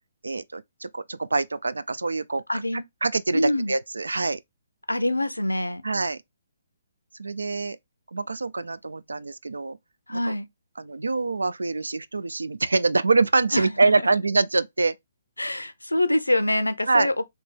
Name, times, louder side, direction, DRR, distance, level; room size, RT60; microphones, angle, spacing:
voice 1, 0.2-4.4 5.8-6.2 7.2-7.8 8.1-9.8 10.1-10.3 10.8-14.9 16.8-17.1, right 3 dB, 75° right, 0.3 m, -25 dB
voice 2, 2.5-2.8 3.3-3.7 4.9-5.8 10.1-10.5 13.5-13.9 15.4-17.1, left 1 dB, 85° left, 0.5 m, -25 dB
3.3 x 2.9 x 3.3 m
figure-of-eight pair, 135°, 0 cm